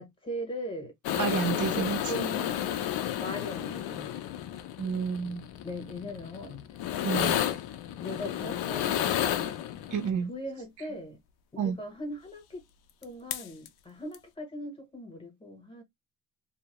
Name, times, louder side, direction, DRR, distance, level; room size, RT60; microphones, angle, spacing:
voice 1, 0.0-2.7 3.2-4.6 5.6-6.6 8.0-9.6 10.3-11.2 11.5-12.6 13.0-15.8, equal, 15° left, 0.8 m, -40 dB
sound 1, 1.0-10.1 13.0-13.1 13.3-13.7 14.1-14.2, left 11 dB, 90° left, 0.5 m, -32 dB
voice 2, 1.2-2.3 4.8-5.5 7.0-7.4 9.9-10.3 11.6-11.8, right 7 dB, 55° right, 0.5 m, -30 dB
2.7 x 2.0 x 2.8 m
cardioid pair, 155°, 36 cm